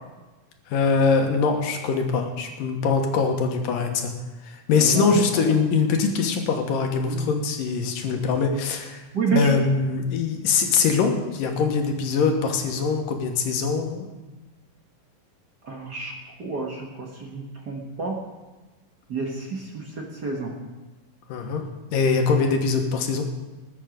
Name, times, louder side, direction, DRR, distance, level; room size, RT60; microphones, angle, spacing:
voice 1, 0.7-4.1 4.4-9.0 9.3-14.1 21.3-21.6 21.9-23.3, left 5 dB, 85° left, 4 dB, 3.0 m, -23 dB
voice 2, 4.7-5.2 7.1-7.3 9.1-9.5 15.7-16.1 16.4-18.2 19.1-20.5, right 5 dB, 45° right, -1 dB, 1.4 m, -29 dB
20.0 x 8.2 x 5.2 m, 1.2 s
omnidirectional pair, 3.8 m